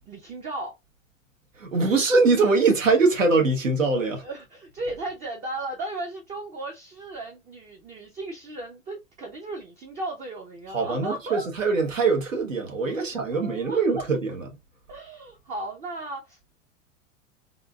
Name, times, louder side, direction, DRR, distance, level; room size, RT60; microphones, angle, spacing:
voice 1, 0.1-0.7 3.9-11.5 12.8-14.0 14.9-16.5, right 2 dB, 20° right, 0.6 m, -36 dB
voice 2, 1.6-4.2 10.7-14.4, right 3 dB, 75° right, 1.2 m, -22 dB
3.5 x 2.5 x 2.2 m
figure-of-eight pair, 90°, 39 cm